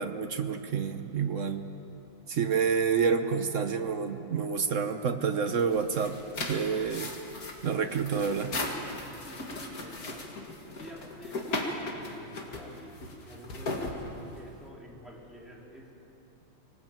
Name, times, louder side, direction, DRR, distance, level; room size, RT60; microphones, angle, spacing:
voice 1, 0.0-1.7 2.3-7.1 7.6-8.5, right 6 dB, 55° right, 7 dB, 0.9 m, -28 dB
sound 1, 5.5-14.6, left 2 dB, 45° left, 2.5 m, -37 dB
voice 2, 6.6-7.0 8.9-10.4 10.8-15.9, equal, ahead, -4 dB, 3.5 m, -50 dB
22.5 x 18.5 x 8.8 m, 2.9 s
omnidirectional pair, 2.2 m